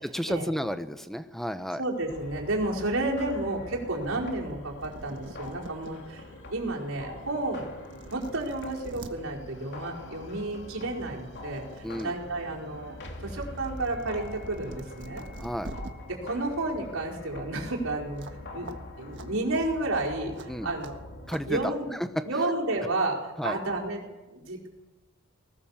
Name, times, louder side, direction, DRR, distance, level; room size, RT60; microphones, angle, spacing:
voice 1, 0.0-1.8 11.8-12.1 15.4-15.7 20.5-20.7 21.3-21.6 23.4-23.6, equal, ahead, 11 dB, 0.9 m, -32 dB
voice 2, 1.8-7.7 8.1-15.2 16.1-18.3 18.5-18.7 19.0-21.1 21.5-21.9 22.2-24.7, right 2 dB, 75° right, -2 dB, 4.8 m, -31 dB
sound 1, 2.1-21.6, left 1 dB, 55° left, 2.8 m, -44 dB
sound 2, 4.5-4.6 4.8-5.9 6.5-6.6 7.4-7.5 7.8-9.1 10.4-10.6 11.0-12.1 12.4-15.9 18.2-18.4 18.7-18.8 19.1-19.3 20.4-20.5 20.8-20.9 21.3-21.4, right 2 dB, 60° right, 1.5 m, -45 dB
19.5 x 18.5 x 7.3 m, 1.2 s
head